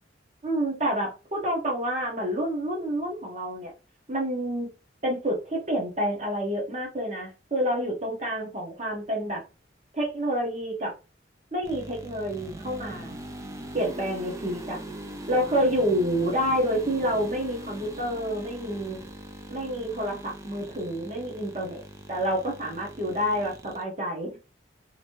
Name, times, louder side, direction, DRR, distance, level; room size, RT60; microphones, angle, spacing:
voice 1, 0.4-3.7 4.1-4.7 5.0-9.4 9.9-10.9 11.5-13.2 13.7-14.8 15.3-19.0 19.5-21.8 22.1-24.4, equal, 35° right, -1 dB, 1.0 m, -28 dB
sound 1, 11.6-23.8, right 1 dB, 15° right, 0.3 m, -41 dB
3.0 x 2.7 x 2.9 m, 0.31 s
head